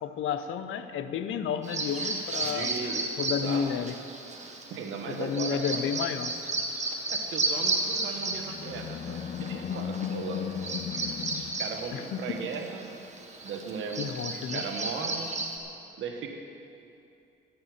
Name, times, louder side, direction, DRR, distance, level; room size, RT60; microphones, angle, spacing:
voice 1, 0.0-2.7 3.2-3.9 5.1-6.3 11.9-12.4 14.0-14.6, left 7 dB, 80° left, 9 dB, 0.8 m, -31 dB
Bird vocalization bird call bird song, 1.6-15.6, right 3 dB, 35° right, 1.7 m, -34 dB
voice 2, 2.4-3.7 4.7-5.9 7.1-10.5 11.6-12.9 13.4-14.1 14.4-15.3 15.9-16.3, right 5 dB, 80° right, 3 dB, 1.5 m, -37 dB
Animal, 7.8-12.4, left 9 dB, 40° left, 0.4 m, -36 dB
14.0 x 6.9 x 9.4 m, 2.7 s
cardioid pair, 90°, 20 cm